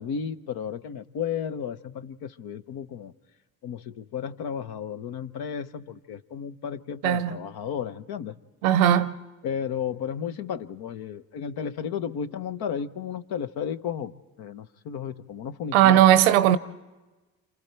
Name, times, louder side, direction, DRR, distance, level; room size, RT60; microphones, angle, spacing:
voice 1, 0.0-3.1 3.6-8.4 9.4-16.1, left 7 dB, 65° left, 0.9 m, -33 dB
voice 2, 7.0-7.4 8.6-9.2 15.7-16.6, right 12 dB, 85° right, 0.7 m, -18 dB
27.5 x 27.5 x 4.5 m
hypercardioid pair, 45°, 41 cm